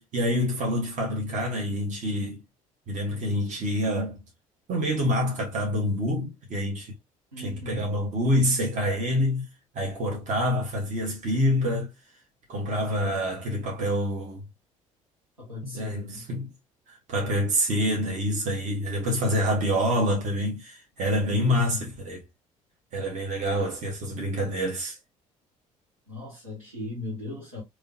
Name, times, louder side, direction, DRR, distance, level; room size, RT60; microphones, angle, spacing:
voice 1, 0.0-2.4 2.9-4.2 4.7-6.9 7.4-9.5 9.7-11.9 12.5-14.4 15.6-16.5 16.9-22.2 22.9-25.0, equal, 45° right, 1.5 m, -27 dB
voice 2, 7.3-7.9 15.4-16.3 21.3-21.8 23.5-23.7 26.1-27.6, left 2 dB, 85° right, 1.3 m, -37 dB
3.5 x 3.1 x 2.6 m
figure-of-eight pair, 50°, 18 cm